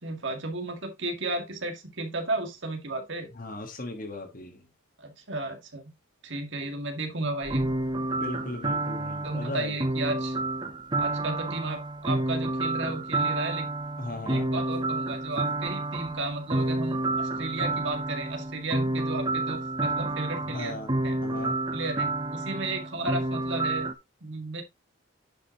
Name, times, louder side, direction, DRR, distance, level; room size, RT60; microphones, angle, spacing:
voice 1, 0.0-3.3 5.0-5.8 6.2-7.7 9.2-10.4 11.0-13.7 14.3-20.8 21.0-21.2 21.7-23.9 24.2-24.6, right 2 dB, 60° right, 2.0 m, -34 dB
voice 2, 3.3-4.7 8.2-9.8 14.0-14.5 20.4-20.9 21.2-21.6, left 2 dB, 40° left, 1.4 m, -37 dB
sound 1, 7.4-23.9, right 2 dB, 20° right, 0.7 m, -29 dB
10.0 x 5.3 x 2.9 m
head